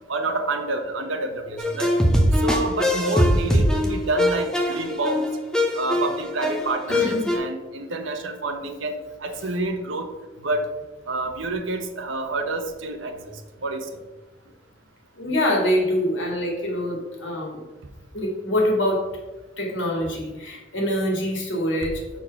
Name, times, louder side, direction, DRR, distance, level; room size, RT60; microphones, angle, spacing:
voice 1, 0.1-2.0 2.4-5.2 5.7-7.0 7.3-10.1 10.4-10.7 11.1-14.0, right 2 dB, 80° right, 5 dB, 1.0 m, -28 dB
sound 1, 1.6-7.4, left 1 dB, 5° left, 0.8 m, -21 dB
voice 2, 6.9-7.4 15.1-17.6 18.1-19.1 19.6-22.2, equal, 75° left, 0 dB, 1.9 m, -25 dB
6.2 x 4.6 x 5.7 m, 1.2 s
head